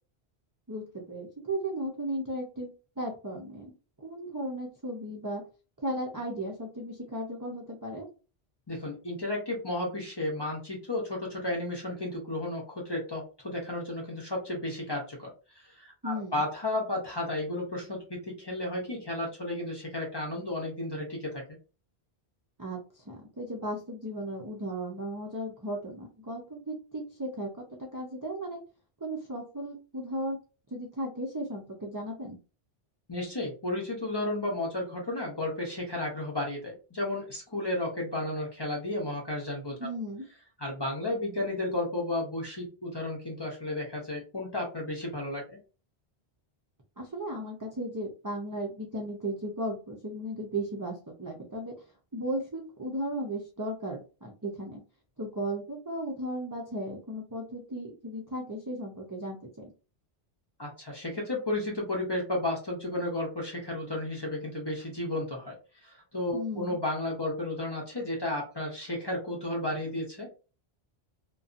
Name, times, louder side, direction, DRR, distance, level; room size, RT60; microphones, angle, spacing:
voice 1, 0.7-2.7 3.0-3.7 4.0-5.4 5.8-8.1 16.0-16.4 22.6-22.8 23.0-28.6 29.0-30.4 30.7-32.4 39.8-40.2 47.0-51.7 52.1-54.8 55.2-59.7 66.3-66.8, right 1 dB, 30° right, -2 dB, 0.4 m, -35 dB
voice 2, 8.7-21.4 33.1-39.8 40.6-45.6 60.6-65.6 65.8-70.3, left 1 dB, 25° left, -1 dB, 0.7 m, -33 dB
2.7 x 2.2 x 2.4 m, 0.33 s
omnidirectional pair, 1.1 m